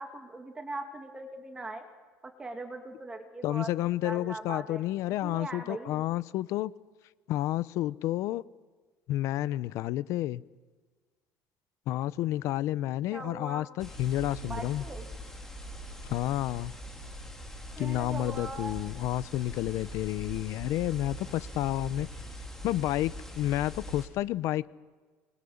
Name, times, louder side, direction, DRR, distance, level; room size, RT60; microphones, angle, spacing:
voice 1, 0.0-1.8 2.4-3.7 4.0-4.8 5.2-6.0 13.1-13.7 14.4-15.1 17.7-18.8, right 2 dB, 15° right, 2.0 m, -40 dB
voice 2, 3.4-6.7 7.3-8.4 9.1-10.4 11.9-14.8 16.0-16.7 17.8-22.1 22.6-24.7, left 14 dB, 55° left, 0.7 m, -30 dB
sound 1, 13.8-24.1, equal, 5° left, 3.3 m, -42 dB
26.0 x 21.5 x 7.2 m
cardioid pair, 165°, 6 cm